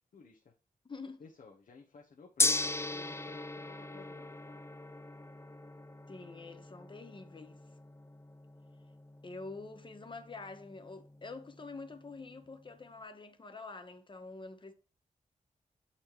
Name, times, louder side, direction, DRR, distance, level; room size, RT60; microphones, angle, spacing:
voice 1, 0.1-0.5 1.2-4.6, left 4 dB, 65° left, 0.9 m, -56 dB
voice 2, 0.8-1.2 6.1-7.6 9.2-14.7, left 3 dB, 35° left, 0.9 m, -46 dB
Gong, 2.4-12.6, left 2 dB, 20° left, 0.4 m, -39 dB
8.4 x 4.2 x 3.0 m
wide cardioid pair, 90°, 14 cm